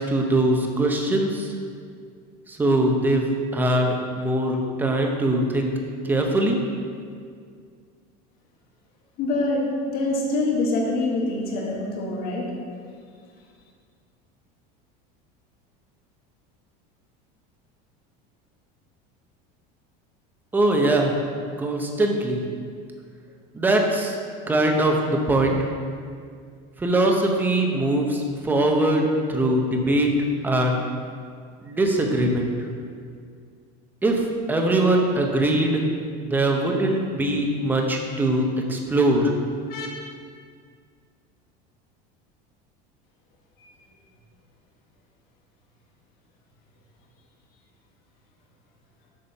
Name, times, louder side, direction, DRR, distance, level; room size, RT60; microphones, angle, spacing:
voice 1, 0.0-1.5 2.5-5.7 6.0-6.6 20.5-21.1 21.6-22.4 23.5-24.2 24.5-25.7 26.8-30.1 30.4-30.8 31.6-32.5 34.0-35.8 36.2-39.3, right 1 dB, 10° right, 1 dB, 0.8 m, -22 dB
voice 2, 9.2-12.4 39.7-39.9 43.6-43.7, left 2 dB, 45° left, -2 dB, 1.7 m, -25 dB
6.8 x 6.2 x 5.5 m, 2.1 s
cardioid pair, 155°, 21 cm